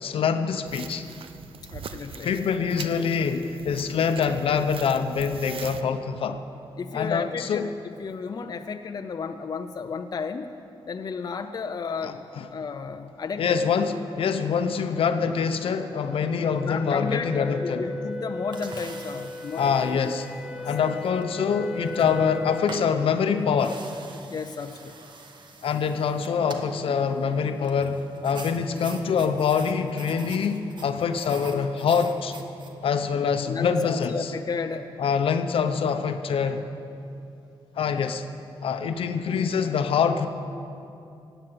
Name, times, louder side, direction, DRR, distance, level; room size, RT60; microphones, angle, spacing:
voice 1, 0.0-1.0 2.2-6.4 6.9-7.7 12.0-12.5 13.4-17.9 19.6-20.3 20.6-23.8 25.6-32.3 32.8-34.3 35.0-36.6 37.8-38.2 38.6-40.3, left 6 dB, 70° left, 8 dB, 0.9 m, -25 dB
sound 1, 0.7-5.8, right 7 dB, 70° right, 0.7 m, -42 dB
voice 2, 1.6-2.4 6.8-7.7 8.0-10.5 10.9-12.2 12.5-13.6 16.6-20.1 20.5-20.7 24.3-24.9 33.5-34.9, left 5 dB, 45° left, 7 dB, 0.6 m, -33 dB
sound 2, 12.9-22.8, left 2 dB, ahead, 1.1 m, -38 dB
sound 3, 18.5-32.7, right 3 dB, 55° right, 1.4 m, -45 dB
16.5 x 9.1 x 7.6 m, 2.7 s
cardioid pair, 95°, 10 cm